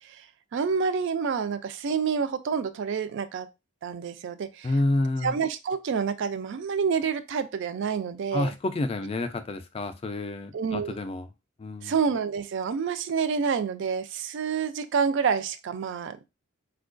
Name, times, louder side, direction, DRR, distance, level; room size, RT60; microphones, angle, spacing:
voice 1, 0.5-3.5 3.8-4.7 5.2-8.5 10.5-11.0 11.8-16.2, right 6 dB, 60° right, 0.3 m, -28 dB
voice 2, 4.6-5.3 8.3-11.3 11.6-11.9, left 2 dB, 30° left, 0.3 m, -29 dB
4.3 x 2.3 x 2.5 m
head